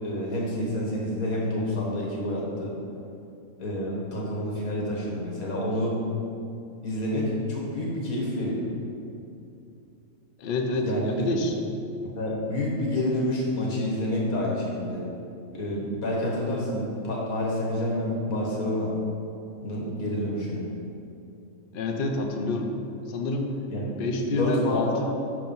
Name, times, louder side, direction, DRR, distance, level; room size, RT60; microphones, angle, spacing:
voice 1, 0.0-2.8 3.6-6.0 6.8-8.6 10.8-11.3 12.2-15.0 15.5-18.9 19.6-20.7 23.7-23.9 24.3-25.0, left 1 dB, 80° left, -3 dB, 1.8 m, -28 dB
voice 2, 10.4-11.6 21.7-22.8 23.1-23.5 24.0-25.1, left 2 dB, 55° left, 3 dB, 0.6 m, -27 dB
6.1 x 4.7 x 5.4 m, 2.7 s
omnidirectional pair, 1.5 m